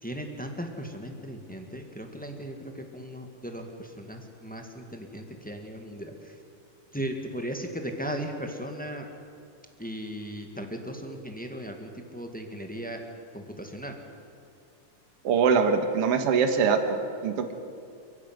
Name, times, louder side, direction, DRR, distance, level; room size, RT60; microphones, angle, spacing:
voice 1, 0.0-6.3 6.9-9.1 9.8-13.0 13.3-13.9, equal, 5° left, 3 dB, 1.2 m, -37 dB
voice 2, 15.2-17.0 17.2-17.5, right 5 dB, 55° right, 6 dB, 2.3 m, -23 dB
29.5 x 12.0 x 9.5 m, 2.4 s
omnidirectional pair, 3.4 m